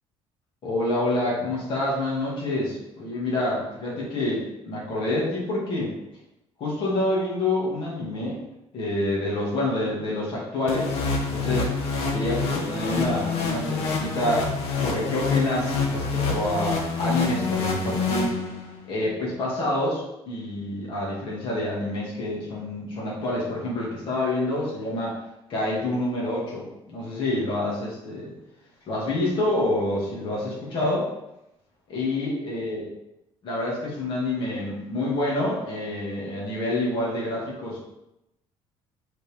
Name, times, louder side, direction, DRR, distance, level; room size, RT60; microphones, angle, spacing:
voice 1, 0.6-5.9 6.6-8.4 8.7-11.7 12.1-18.4 18.9-25.2 25.5-28.3 28.9-31.1 31.9-32.8 33.4-37.8, left 1 dB, 50° left, -6 dB, 2.1 m, -27 dB
sound 1, 10.7-18.8, left 4 dB, 65° left, 1.2 m, -27 dB
7.9 x 4.4 x 3.5 m, 0.89 s
cardioid pair, 155°, 11 cm